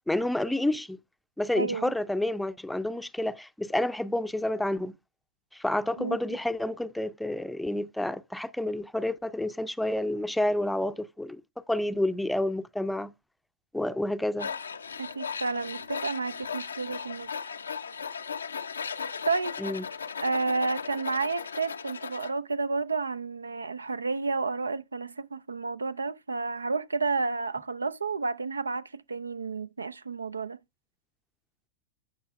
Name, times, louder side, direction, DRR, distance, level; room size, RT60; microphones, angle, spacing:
voice 1, 0.1-1.0 1.4-5.0 5.5-11.4 11.7-13.1 13.7-14.5 19.6-19.8, left 1 dB, 5° left, 0.5 m, -29 dB
voice 2, 1.6-1.9 6.0-6.2 15.0-17.5 19.3-19.5 20.2-30.6, right 4 dB, 75° right, 0.3 m, -31 dB
Tools, 14.4-22.3, left 6 dB, 75° left, 0.5 m, -37 dB
15.0 x 5.6 x 2.3 m
figure-of-eight pair, 90°, 0 cm